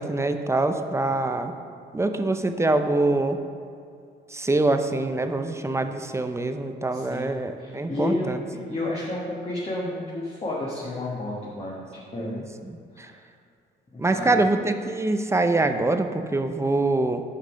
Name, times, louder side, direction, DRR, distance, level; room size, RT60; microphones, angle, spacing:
voice 1, 0.0-1.5 1.9-3.4 4.3-8.4 12.2-13.1 14.0-17.2, right 2 dB, 15° right, 7 dB, 0.5 m, -24 dB
voice 2, 6.9-12.4 12.9-13.2 13.9-14.4, left 2 dB, 30° left, -5 dB, 1.4 m, -32 dB
6.5 x 5.4 x 6.3 m, 2.4 s
cardioid pair, 90°, 20 cm